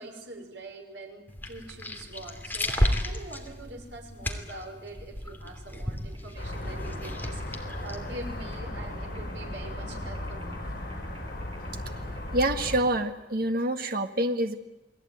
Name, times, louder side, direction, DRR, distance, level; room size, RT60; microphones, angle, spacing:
voice 1, 0.0-10.8, right 2 dB, 75° right, 2 dB, 5.9 m, -44 dB
sound 1, 1.3-8.6, left 1 dB, 10° left, 2.8 m, -33 dB
sound 2, 6.1-12.5, right 1 dB, 30° right, 4.0 m, -50 dB
sound 3, 6.4-12.8, left 1 dB, 55° left, 7.5 m, -36 dB
voice 2, 12.3-14.5, right 1 dB, 60° right, 6 dB, 1.8 m, -26 dB
29.0 x 20.5 x 9.4 m, 0.99 s
head